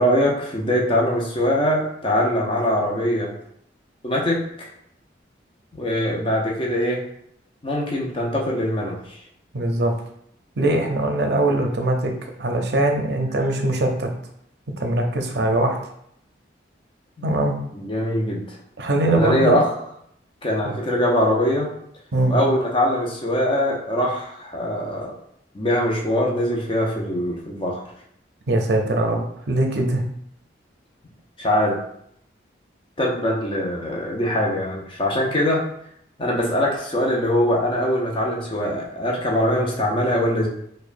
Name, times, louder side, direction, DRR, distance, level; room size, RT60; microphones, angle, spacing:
voice 1, 0.0-3.3 4.0-4.7 5.7-7.0 7.6-9.2 17.7-18.6 19.1-19.7 20.4-21.7 22.3-25.1 25.5-27.8 31.4-31.8 33.0-35.6 36.2-40.5, equal, 25° left, -1 dB, 0.6 m, -22 dB
voice 2, 9.5-9.9 10.6-12.1 12.4-14.1 14.8-15.8 17.2-17.5 18.8-19.6 20.6-20.7 22.1-22.4 28.5-30.0, right 1 dB, 60° right, 3 dB, 0.5 m, -21 dB
4.8 x 2.2 x 2.5 m, 0.71 s
head